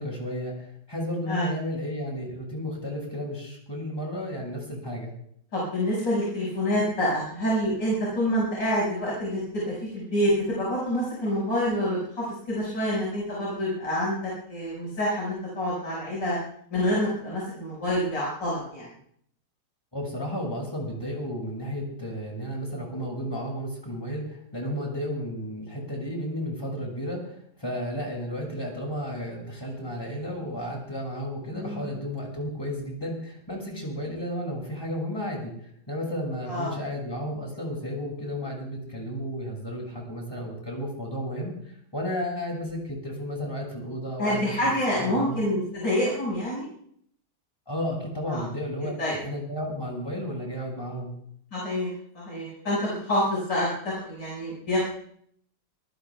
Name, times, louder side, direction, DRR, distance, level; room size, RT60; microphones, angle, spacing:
voice 1, 0.0-5.1 19.9-44.7 45.0-45.4 47.7-51.1, equal, 15° left, -1 dB, 6.5 m, -33 dB
voice 2, 5.5-16.4 16.7-18.9 31.5-31.9 36.5-36.7 44.2-46.7 48.3-48.4 49.0-49.1 51.5-54.8, equal, 85° left, -7 dB, 6.5 m, -27 dB
25.5 x 19.0 x 2.4 m, 0.65 s
omnidirectional pair, 1.9 m